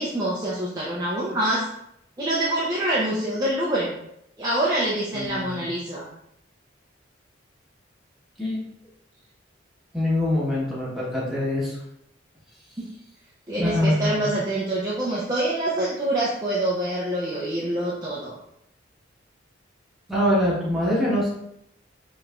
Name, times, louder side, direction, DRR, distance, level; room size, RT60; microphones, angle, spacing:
voice 1, 0.0-1.7 2.2-4.0 4.4-6.1 12.8-12.9 13.5-18.4, right 1 dB, 20° right, -7 dB, 0.6 m, -25 dB
voice 2, 5.1-5.7 8.4-8.6 9.9-11.8 13.6-14.3 20.1-21.3, left 1 dB, ahead, -7 dB, 1.3 m, -24 dB
4.9 x 3.1 x 2.5 m, 0.77 s
head